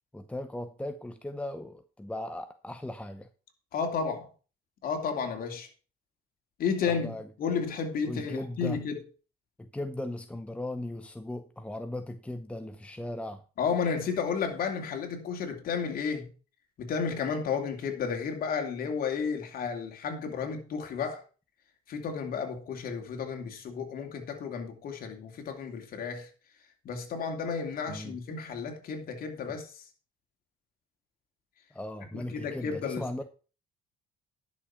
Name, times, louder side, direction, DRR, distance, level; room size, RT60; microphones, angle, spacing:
voice 1, 0.1-3.3 6.9-7.3 8.0-8.8 9.6-13.4 27.9-28.2 29.5-29.6 31.7-33.2, left 1 dB, 5° left, 0.8 m, -37 dB
voice 2, 3.7-4.3 4.8-5.7 6.6-9.0 13.6-16.3 16.8-21.2 21.9-26.3 26.8-29.8 32.1-33.1, left 6 dB, 60° left, 2.9 m, -32 dB
11.0 x 6.5 x 5.8 m
cardioid pair, 110°, 17 cm